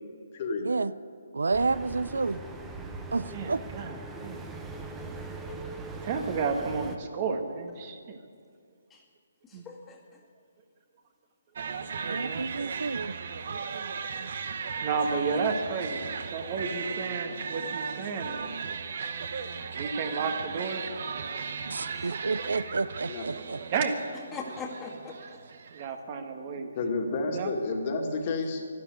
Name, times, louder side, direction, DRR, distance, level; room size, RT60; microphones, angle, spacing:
voice 1, 0.3-0.7 23.1-23.2 26.8-28.6, left 3 dB, 40° left, 3 dB, 2.1 m, -30 dB
voice 2, 1.3-2.4 3.1-3.6 12.0-13.1 21.7-23.6, right 3 dB, 80° right, 18 dB, 0.4 m, -30 dB
sound 1, 1.5-7.0, right 3 dB, 10° right, 1.0 m, -40 dB
voice 3, 3.3-4.4 6.0-8.2 9.5-9.6 12.0-12.7 14.1-14.2 14.8-18.5 18.9-19.1 19.7-21.1 21.7-21.8 22.0-22.3 23.7-24.0 25.7-26.7 27.3-27.5, right 5 dB, 35° right, 5 dB, 1.6 m, -32 dB
voice 4, 9.4-10.2 22.0-22.1 24.3-25.4, left 4 dB, 10° left, 0 dB, 2.0 m, -41 dB
sound 2, 11.6-25.9, right 6 dB, 55° right, 1.1 m, -36 dB
12.5 x 12.0 x 9.4 m, 2.2 s
hypercardioid pair, 150°, 0 cm